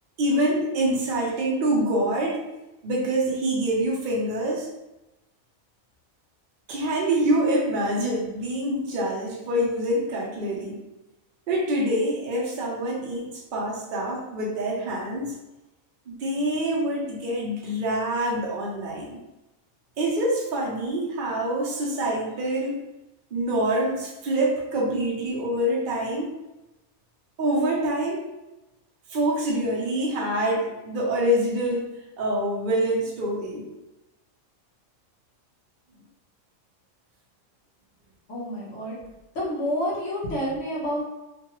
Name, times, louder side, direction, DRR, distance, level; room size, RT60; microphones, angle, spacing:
voice 1, 0.2-2.4 2.8-4.7 6.7-10.8 11.5-15.3 16.1-19.2 20.0-22.8 23.3-26.3 27.4-28.3 29.1-33.6, right 1 dB, 50° right, -3 dB, 0.6 m, -26 dB
voice 2, 38.3-39.1 39.3-41.0, equal, 60° left, -5 dB, 1.2 m, -29 dB
3.1 x 2.2 x 2.9 m, 0.99 s
omnidirectional pair, 1.5 m